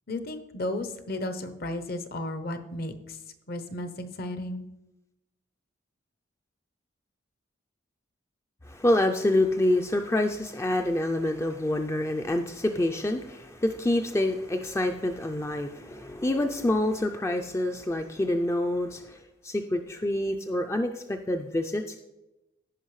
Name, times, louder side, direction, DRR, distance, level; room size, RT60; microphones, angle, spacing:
voice 1, 0.1-3.2 3.5-4.7, left 1 dB, 50° left, 9 dB, 0.7 m, -34 dB
voice 2, 8.7-22.0, left 1 dB, 15° left, 5 dB, 0.3 m, -27 dB
15.5 x 5.2 x 3.2 m, 0.97 s
head